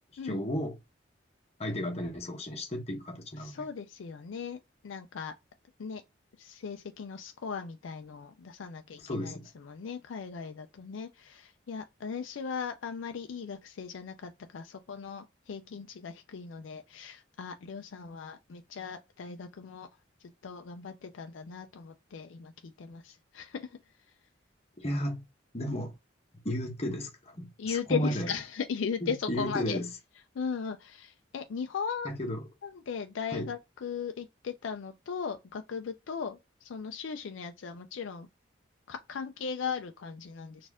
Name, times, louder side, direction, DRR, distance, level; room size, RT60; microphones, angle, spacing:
voice 1, 0.2-0.7 1.6-3.6 9.0-9.4 24.8-25.2 25.5-25.9 26.4-28.3 29.0-29.9 32.2-32.4 33.3-33.5, equal, 30° left, 1.0 m, -33 dB
voice 2, 3.4-5.3 5.8-6.0 6.4-19.9 20.2-23.8 27.6-29.8 30.3-32.1 32.6-38.3 38.9-40.7, left 6 dB, 85° left, 0.4 m, -38 dB
4.2 x 2.5 x 3.5 m
head